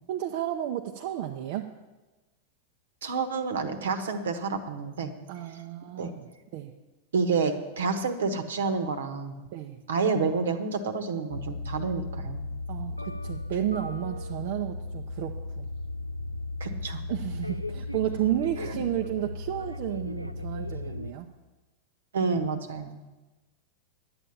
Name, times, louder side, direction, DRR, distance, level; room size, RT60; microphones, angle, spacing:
voice 1, 0.1-1.7 5.3-6.3 6.5-6.7 9.5-9.8 12.7-15.7 17.1-21.3, right 12 dB, 50° right, 3 dB, 0.7 m, -32 dB
voice 2, 3.0-5.1 6.0-6.1 7.1-9.3 9.9-12.4 16.6-17.0 18.6-18.7 22.1-23.0, right 4 dB, 65° right, 8 dB, 1.1 m, -29 dB
sound 1, 11.3-21.1, left 2 dB, 90° right, 0.5 m, -36 dB
11.0 x 8.9 x 7.2 m, 1.2 s
figure-of-eight pair, 90°, 0 cm